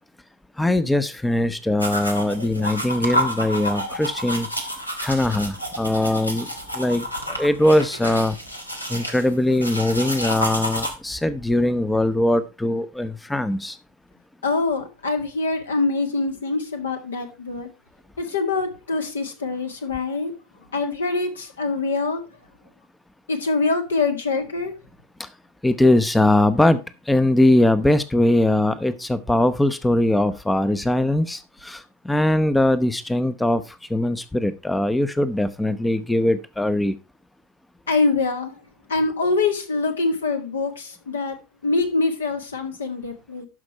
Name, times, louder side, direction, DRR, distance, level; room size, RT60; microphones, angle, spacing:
voice 1, 0.6-4.5 5.0-8.4 8.9-13.8 25.2-25.3 25.6-37.0, left 1 dB, 5° left, 0.6 m, -21 dB
sound 1, 1.8-10.9, equal, 90° left, 1.7 m, -29 dB
voice 2, 14.4-17.7 18.2-20.3 20.7-22.2 23.3-24.7 37.9-38.6 38.9-41.4 41.6-43.5, left 3 dB, 70° left, 1.8 m, -24 dB
12.5 x 5.2 x 4.4 m
figure-of-eight pair, 80°, 0 cm